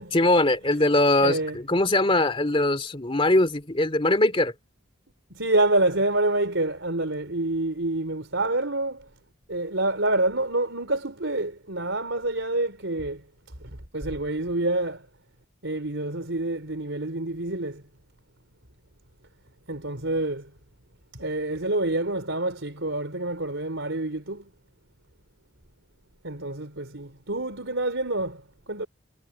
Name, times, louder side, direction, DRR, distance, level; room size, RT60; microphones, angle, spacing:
voice 1, 0.1-4.5, left 2 dB, 25° left, 2.6 m, -21 dB
voice 2, 1.2-1.6 5.3-9.1 9.5-13.2 13.6-15.1 15.6-17.8 19.7-20.5 21.1-24.5 26.2-28.9, right 2 dB, 65° right, 4.3 m, -27 dB
head